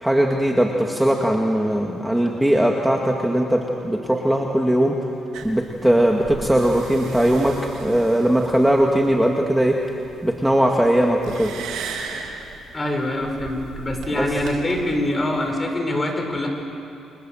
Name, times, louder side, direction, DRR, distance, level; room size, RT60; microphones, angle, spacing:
voice 1, 0.0-5.0 5.4-9.8 10.2-11.5 14.1-14.3, right 1 dB, 5° right, 0 dB, 2.2 m, -19 dB
sound 1, 5.3-15.5, right 5 dB, 85° right, 3.3 m, -38 dB
voice 2, 12.7-16.5, left 1 dB, 25° left, 3 dB, 5.9 m, -24 dB
30.0 x 25.5 x 7.8 m, 2.8 s
cardioid pair, 90°, 0 cm